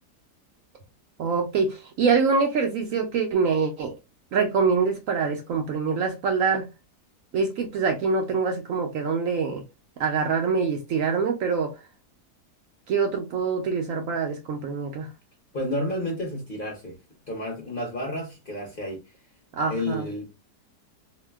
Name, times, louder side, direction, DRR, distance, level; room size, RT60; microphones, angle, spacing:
voice 1, 1.2-3.9 4.3-6.7 7.3-9.6 10.0-11.7 12.9-15.1 19.5-20.0, right 5 dB, 70° right, 0.8 m, -25 dB
voice 2, 15.5-17.0 17.3-19.0 19.6-20.3, left 1 dB, 40° left, 0.8 m, -31 dB
2.7 x 2.1 x 3.3 m
omnidirectional pair, 1.7 m